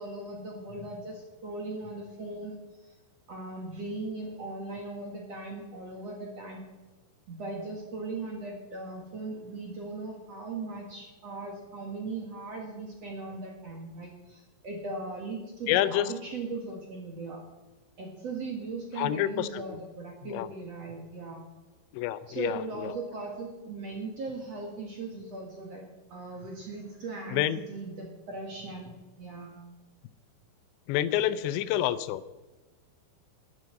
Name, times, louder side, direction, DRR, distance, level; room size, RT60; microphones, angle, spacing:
voice 1, 0.0-2.5 2.8-2.9 3.3-6.6 7.3-17.4 18.0-21.4 22.3-25.8 26.1-29.6, right 3 dB, 50° right, 0 dB, 2.1 m, -38 dB
voice 2, 15.7-16.1 19.0-19.8 20.3-20.5 21.9-22.9 27.3-27.6 30.9-32.3, left 13 dB, 85° left, 14 dB, 3.0 m, -28 dB
12.0 x 9.6 x 7.7 m, 1.2 s
omnidirectional pair, 5.1 m